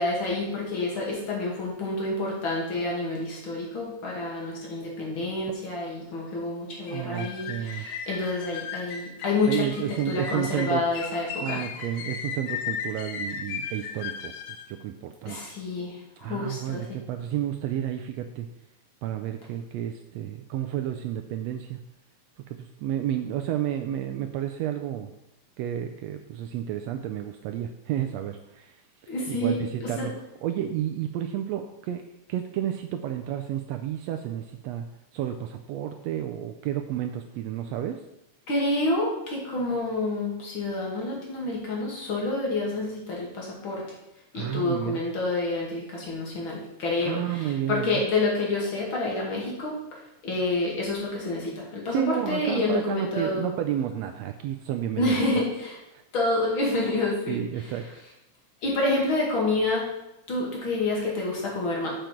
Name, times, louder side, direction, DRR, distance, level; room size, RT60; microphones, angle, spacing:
voice 1, 0.0-9.7 10.1-11.7 15.3-17.0 29.1-30.1 38.5-43.8 44.3-53.5 55.0-55.8 56.1-57.4 58.6-59.8 60.3-61.9, left 2 dB, 45° left, -3 dB, 2.8 m, -28 dB
sound 1, 6.9-14.7, left 6 dB, 75° left, 1.8 m, -36 dB
voice 2, 6.9-7.9 9.5-10.8 11.4-15.5 16.2-18.5 19.0-21.8 22.5-25.1 25.6-28.7 29.3-30.1 30.4-32.0 32.3-34.8 35.1-38.0 44.3-45.0 47.0-48.0 51.9-55.4 55.9-56.0 57.3-57.9, right 11 dB, 80° right, 6 dB, 1.6 m, -31 dB
7.6 x 7.0 x 4.4 m, 0.91 s
omnidirectional pair, 3.4 m